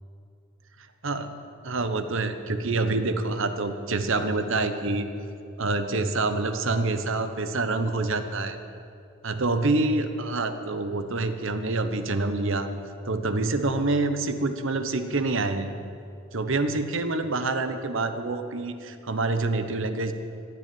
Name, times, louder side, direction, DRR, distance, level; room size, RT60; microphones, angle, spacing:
voice 1, 1.6-5.1 5.6-8.6 9.2-12.7 13.0-15.7 16.3-20.1, right 3 dB, 60° right, 9 dB, 1.1 m, -26 dB
15.0 x 9.7 x 9.3 m, 2.5 s
head